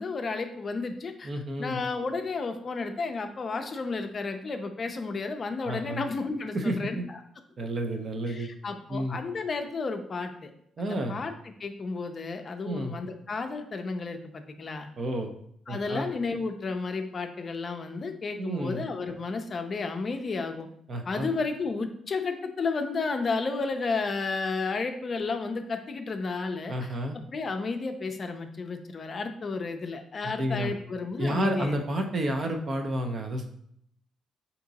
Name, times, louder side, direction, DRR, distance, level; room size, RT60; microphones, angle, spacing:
voice 1, 0.0-1.3 1.6-7.2 8.3-10.5 10.8-11.3 11.6-14.9 15.7-20.7 21.0-27.0 27.3-31.7, left 4 dB, 40° left, 6 dB, 0.4 m, -32 dB
voice 2, 1.2-1.8 5.6-6.0 6.5-7.0 7.6-8.5 8.9-9.2 10.8-11.2 12.6-13.0 15.0-15.3 15.7-16.1 18.4-18.9 20.9-21.3 26.7-27.2 30.2-30.7 31.2-33.5, right 1 dB, 45° right, 4 dB, 0.6 m, -30 dB
3.6 x 2.9 x 4.0 m, 0.70 s
cardioid pair, 90°, 0 cm